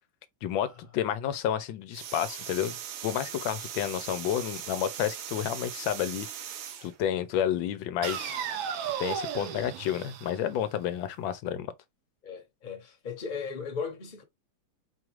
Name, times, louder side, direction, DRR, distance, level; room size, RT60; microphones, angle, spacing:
voice 1, 0.4-2.8 3.0-6.3 6.8-8.3 9.0-11.7, left 10 dB, 85° left, 1.4 m, -30 dB
sound 1, 1.9-6.9 8.0-10.9, right 9 dB, 85° right, 1.4 m, -37 dB
voice 2, 12.2-14.2, left 5 dB, 30° left, 0.9 m, -37 dB
4.7 x 2.4 x 3.0 m
omnidirectional pair, 2.1 m